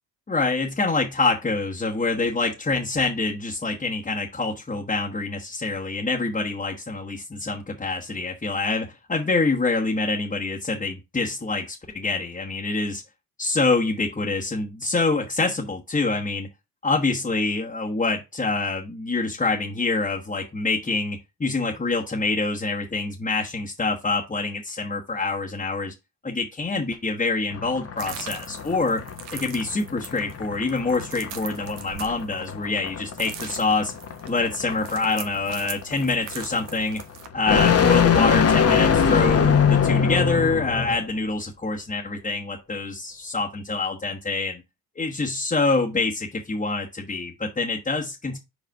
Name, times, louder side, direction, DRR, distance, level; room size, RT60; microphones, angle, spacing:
voice 1, 0.3-13.0 13.4-16.5 16.8-25.9 26.2-29.0 29.3-33.9 34.3-37.0 37.3-44.6 44.9-48.4, left 3 dB, 20° left, -2 dB, 1.3 m, -26 dB
sound 1, 27.5-41.0, left 7 dB, 35° left, 1.0 m, -23 dB
sound 2, 28.0-32.9 33.1-37.3, right 9 dB, 80° right, 1.2 m, -40 dB
5.2 x 4.8 x 4.7 m, 0.24 s
cardioid pair, 80°, 42 cm